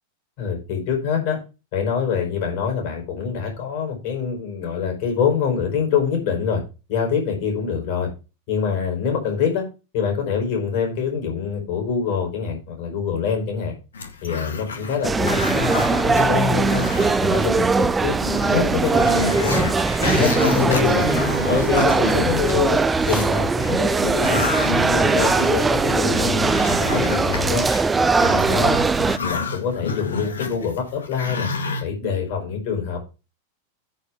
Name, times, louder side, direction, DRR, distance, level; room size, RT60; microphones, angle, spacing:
voice 1, 0.4-1.4 1.7-6.6 6.9-8.1 8.5-9.6 9.9-13.7 14.2-16.9 17.2-18.2 18.5-19.7 20.0-21.1 21.5-24.4 24.7-27.7 28.2-28.8 29.2-31.5 31.8-33.0, left 6 dB, 45° left, 2 dB, 5.1 m, -25 dB
Growling, 13.9-17.5 17.8-17.9 18.2-23.3 23.8-31.8, left 4 dB, 70° left, 1.8 m, -29 dB
sound 1, 15.0-29.2, right 4 dB, 15° right, 0.6 m, -20 dB
9.5 x 5.1 x 5.8 m, 0.31 s
figure-of-eight pair, 90°, 0 cm